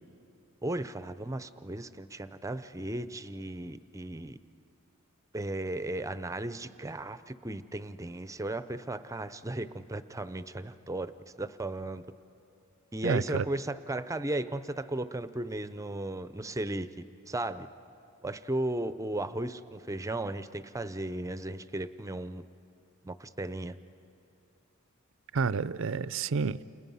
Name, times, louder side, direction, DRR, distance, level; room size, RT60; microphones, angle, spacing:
voice 1, 0.6-4.4 5.3-12.0 12.9-16.9 17.3-17.7 18.2-22.4 23.0-23.7, right 1 dB, 15° right, 12 dB, 0.6 m, -35 dB
voice 2, 13.0-13.4 25.3-26.6, right 5 dB, 65° right, 16 dB, 0.5 m, -29 dB
30.0 x 29.0 x 5.6 m, 2.6 s
head